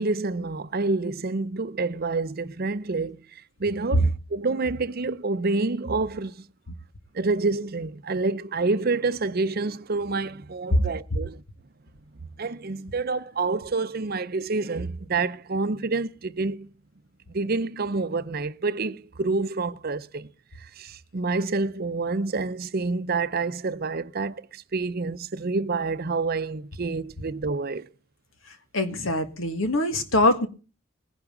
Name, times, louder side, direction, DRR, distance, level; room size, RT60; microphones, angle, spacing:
voice 1, 0.0-3.3 3.6-6.4 7.1-11.4 12.4-16.7 17.3-20.3 20.6-27.9, right 3 dB, 50° right, 0.7 m, -28 dB
voice 2, 28.7-30.5, left 2 dB, 80° left, 1.8 m, -23 dB
19.0 x 11.0 x 3.9 m
head